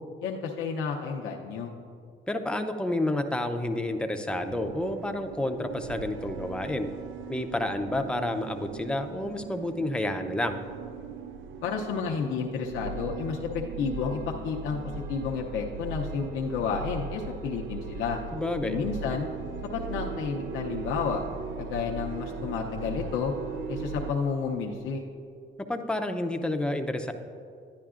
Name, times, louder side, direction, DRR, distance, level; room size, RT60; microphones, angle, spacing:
voice 1, 0.2-1.7 11.6-14.8 15.1-18.2 18.6-19.3 19.7-21.2 21.6-23.3 23.7-25.0, left 5 dB, 85° left, -1 dB, 0.6 m, -31 dB
voice 2, 2.3-6.9 7.3-10.6 18.3-18.8 25.7-27.1, left 1 dB, 5° left, 6 dB, 0.5 m, -30 dB
sound 1, 4.3-24.1, right 4 dB, 80° right, 0.4 m, -38 dB
10.5 x 10.0 x 2.4 m, 2.4 s
cardioid pair, 90°, 20 cm